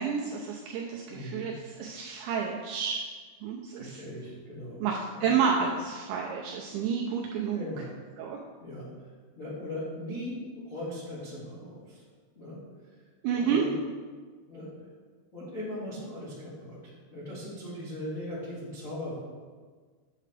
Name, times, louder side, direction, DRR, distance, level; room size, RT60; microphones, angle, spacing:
voice 1, 0.0-3.0 3.4-4.0 4.8-7.7 8.2-8.4 13.2-13.6, right 6 dB, 85° right, -1 dB, 2.5 m, -30 dB
voice 2, 1.1-1.5 3.7-4.9 5.1-5.3 7.5-7.9 8.6-9.1 9.3-10.4 10.6-12.0 12.3-12.6 13.3-13.7 14.5-14.7 15.3-19.2, left 1 dB, 70° left, -10 dB, 0.7 m, -39 dB
8.6 x 8.5 x 3.4 m, 1.5 s
omnidirectional pair, 5.8 m